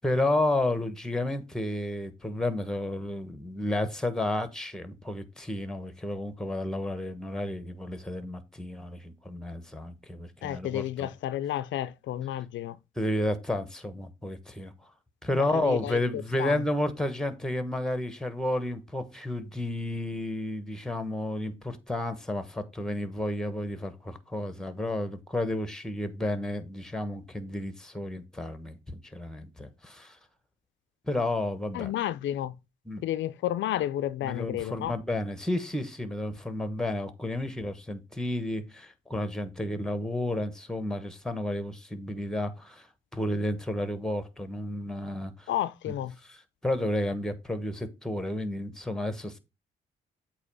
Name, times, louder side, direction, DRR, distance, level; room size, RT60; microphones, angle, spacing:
voice 1, 0.0-11.1 12.9-14.7 15.2-30.2 31.1-31.9 32.9-33.0 34.2-42.9 43.1-45.5 46.2-49.4, left 1 dB, 5° left, 1.2 m, -31 dB
voice 2, 10.4-12.8 15.3-16.6 31.7-32.6 33.0-34.9 45.5-46.1, left 12 dB, 70° left, 0.5 m, -31 dB
8.1 x 3.0 x 5.5 m
cardioid pair, 90°, 20 cm